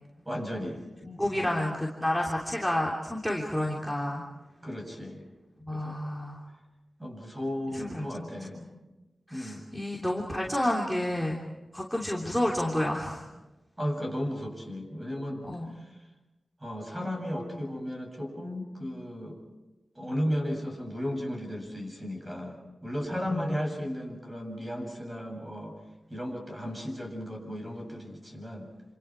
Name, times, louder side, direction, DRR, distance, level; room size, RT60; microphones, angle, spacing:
voice 1, 0.3-0.8 1.3-1.6 4.6-5.3 5.7-6.0 7.0-8.6 9.3-9.6 13.8-15.4 16.6-19.4 20.0-25.7 26.1-28.7, equal, 20° right, 2 dB, 7.5 m, -35 dB
voice 2, 1.0-4.2 5.6-6.4 7.7-8.3 8.5-8.6 9.3-11.4 11.7-13.3 15.4-15.7 23.1-23.5, left 1 dB, ahead, -3 dB, 3.2 m, -30 dB
28.0 x 27.0 x 4.8 m, 1.1 s
wide cardioid pair, 80°, 0 cm